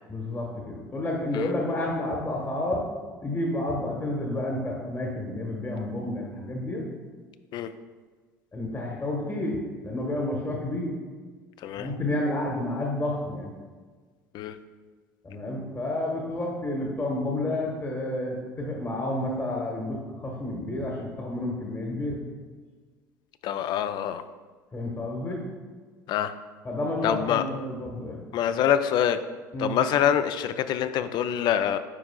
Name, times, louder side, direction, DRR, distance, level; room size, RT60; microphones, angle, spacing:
voice 1, 0.1-2.8 3.2-6.8 8.5-10.9 11.7-13.5 15.2-22.2 24.7-25.4 26.6-28.2 29.5-29.8, left 1 dB, 25° left, -1 dB, 1.2 m, -30 dB
voice 2, 23.4-24.2 26.1-26.3 27.0-27.4 28.3-29.2 29.6-31.8, left 9 dB, 50° left, 11 dB, 0.4 m, -25 dB
9.8 x 4.7 x 2.2 m, 1.4 s
hypercardioid pair, 65°, 9 cm